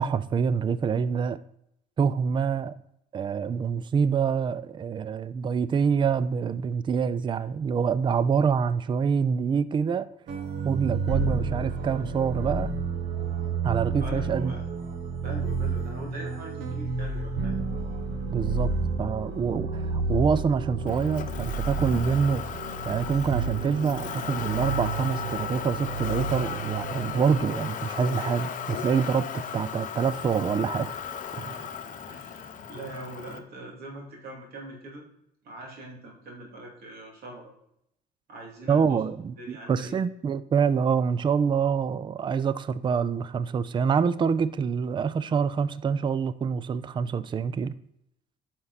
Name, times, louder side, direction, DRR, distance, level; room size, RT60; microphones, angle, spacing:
voice 1, 0.0-1.4 2.0-2.8 3.1-10.1 10.6-12.7 13.6-14.5 18.3-18.7 19.0-22.4 22.8-31.0 31.3-31.7 38.7-47.7, right 6 dB, 30° right, 0.4 m, -26 dB
sound 1, 10.3-27.4, right 4 dB, 85° right, 1.2 m, -31 dB
voice 2, 14.0-14.6 15.2-17.6 32.1-35.1 35.4-37.6 38.3-39.0 39.4-40.0, right 2 dB, 65° right, 2.7 m, -42 dB
Motor vehicle (road), 20.9-33.4, left 8 dB, 50° left, 0.9 m, -36 dB
9.4 x 5.9 x 4.1 m
cardioid pair, 110°, 17 cm